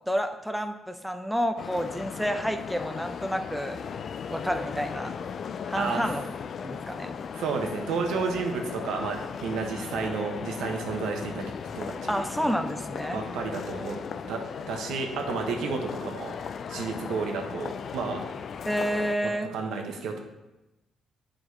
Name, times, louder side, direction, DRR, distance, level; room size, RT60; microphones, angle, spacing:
voice 1, 0.1-3.8 4.3-5.1 5.7-6.2 6.6-7.2 12.1-13.2 18.7-19.5, equal, ahead, 6 dB, 0.6 m, -29 dB
sound 1, 1.6-19.2, left 6 dB, 55° left, 0.3 m, -37 dB
voice 2, 5.8-6.1 7.3-12.2 13.1-16.3 16.7-18.3 19.2-20.2, right 4 dB, 85° right, 3 dB, 1.0 m, -32 dB
9.2 x 5.0 x 3.2 m, 1.0 s
cardioid pair, 90°, 0 cm